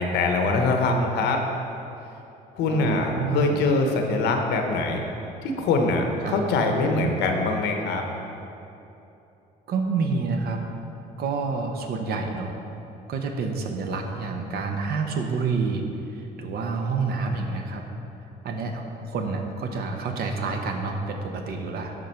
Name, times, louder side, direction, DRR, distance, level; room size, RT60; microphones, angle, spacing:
voice 1, 0.0-1.4 2.6-5.0 5.4-8.0, left 3 dB, 80° left, 3 dB, 0.9 m, -23 dB
voice 2, 2.7-3.6 6.2-6.4 9.7-10.6 11.2-12.6 13.1-15.8 16.1-17.8 18.4-21.9, right 4 dB, 65° right, 4 dB, 0.9 m, -28 dB
11.5 x 3.9 x 4.4 m, 2.9 s
cardioid pair, 110°, 17 cm